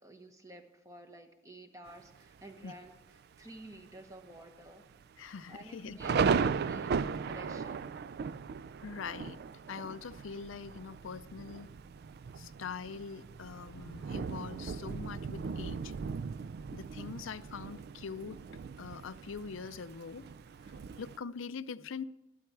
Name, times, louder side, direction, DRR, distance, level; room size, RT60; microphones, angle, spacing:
voice 1, 0.0-2.9 3.4-4.8 5.5-6.1 6.4-7.8, right 1 dB, 15° right, 6 dB, 1.1 m, -51 dB
Thunder, 1.9-2.4 3.0-3.1 3.3-3.8 4.1-4.2 4.9-21.2, right 5 dB, 50° right, 0.3 m, -37 dB
voice 2, 5.2-6.0 8.8-9.4 9.7-11.7 12.4-15.9 16.7-18.4 18.8-20.2 20.7-22.0, left 5 dB, 70° left, 15 dB, 0.5 m, -43 dB
12.5 x 12.0 x 4.6 m, 0.95 s
head